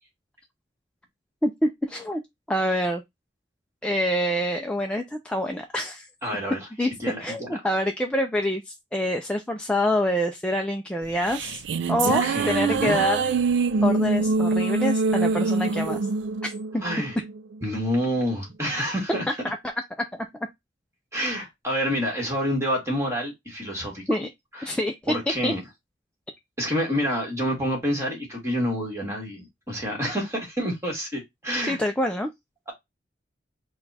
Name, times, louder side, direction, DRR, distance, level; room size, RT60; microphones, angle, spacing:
voice 1, 1.4-2.2 2.5-3.0 3.8-6.1 6.8-6.9 7.2-11.6 11.9-13.2 13.8-16.0 16.4-16.8 19.4-19.7 24.1-24.3 24.6-24.9 25.4-25.5 31.7-32.3, left 1 dB, 5° left, 0.4 m, -26 dB
voice 2, 6.2-6.6 7.0-7.6 12.0-13.0 16.8-17.1 17.6-19.2 21.1-24.0 24.5-24.8 25.1-25.6 26.6-31.8, equal, 15° right, 1.8 m, -28 dB
sound 1, 11.0-17.6, right 4 dB, 75° right, 0.4 m, -24 dB
4.1 x 2.3 x 4.0 m
head